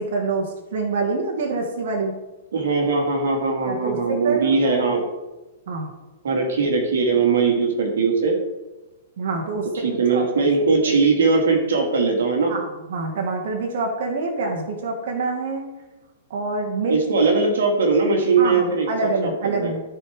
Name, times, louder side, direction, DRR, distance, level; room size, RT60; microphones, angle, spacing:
voice 1, 0.0-2.1 3.7-4.7 5.7-5.9 9.2-10.5 10.8-10.9 12.5-15.7 16.3-17.3 18.4-19.8, right 3 dB, 65° right, 1 dB, 1.8 m, -26 dB
voice 2, 2.5-5.0 6.2-8.4 9.8-12.5 16.9-19.7, right 4 dB, 85° right, 2 dB, 2.0 m, -20 dB
14.0 x 4.9 x 3.6 m, 1.1 s
hypercardioid pair, 150°, 0 cm